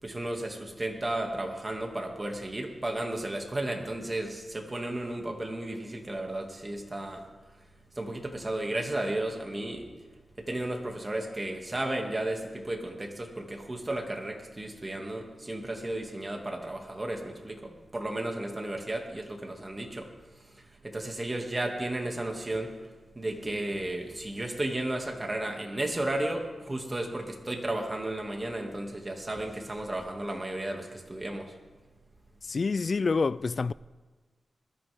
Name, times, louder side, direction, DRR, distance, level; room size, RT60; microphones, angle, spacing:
voice 1, 0.0-7.2 8.0-9.9 10.4-20.1 20.6-22.8 23.2-31.5, right 1 dB, 25° right, 2.3 m, -33 dB
voice 2, 32.4-33.7, left 4 dB, 55° left, 0.3 m, -27 dB
21.0 x 13.0 x 3.6 m
cardioid pair, 70°, 0 cm